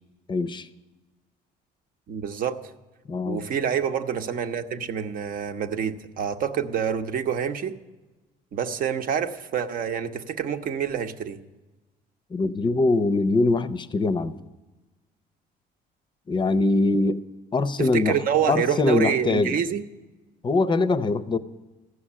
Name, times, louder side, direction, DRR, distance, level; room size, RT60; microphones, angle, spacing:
voice 1, 0.3-0.7 3.1-3.4 12.3-14.3 16.3-17.2 17.5-18.2 18.5-19.6 20.4-21.4, left 3 dB, 25° left, 13 dB, 0.6 m, -23 dB
voice 2, 2.1-2.6 3.2-7.8 8.5-11.4 17.8-19.8, right 8 dB, 55° right, 8 dB, 0.8 m, -27 dB
14.5 x 6.3 x 9.8 m, 1.2 s
cardioid pair, 110°, 17 cm